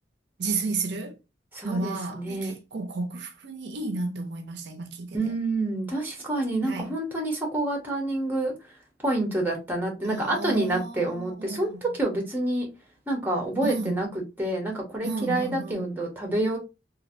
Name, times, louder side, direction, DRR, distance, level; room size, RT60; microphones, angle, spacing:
voice 1, 0.4-1.2 1.6-5.3 6.6-6.9 10.0-11.8 13.6-13.9 15.0-15.9, right 3 dB, 60° right, 0.5 m, -32 dB
voice 2, 1.5-2.5 5.1-8.7 9.0-12.7 13.1-14.1 14.4-16.6, right 2 dB, 10° right, 0.8 m, -28 dB
3.1 x 2.4 x 2.5 m
head